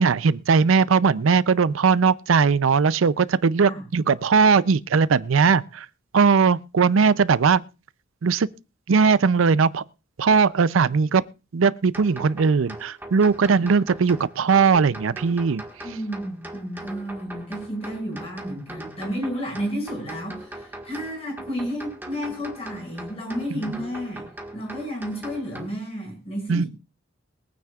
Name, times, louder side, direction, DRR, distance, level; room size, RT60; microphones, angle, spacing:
voice 1, 0.0-5.9 6.1-7.6 8.2-8.5 8.9-9.8 10.2-11.2 11.5-15.6 26.5-26.7, right 5 dB, 80° right, 0.5 m, -19 dB
sound 1, 11.9-25.7, right 1 dB, 10° right, 1.5 m, -40 dB
voice 2, 15.8-24.3 24.5-26.7, equal, 30° left, 6.0 m, -31 dB
22.5 x 9.3 x 2.4 m
head